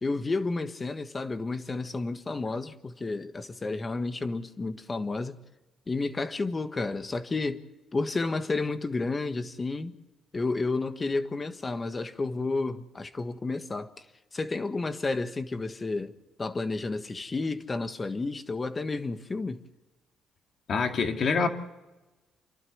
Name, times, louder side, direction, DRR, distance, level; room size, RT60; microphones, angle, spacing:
voice 1, 0.0-5.4 5.9-7.6 7.9-9.9 10.3-13.9 14.3-16.1 16.4-19.6, left 3 dB, 30° left, 1.5 m, -31 dB
voice 2, 20.7-21.5, left 5 dB, 55° left, 2.2 m, -25 dB
29.0 x 12.0 x 8.0 m
cardioid pair, 90°, 0 cm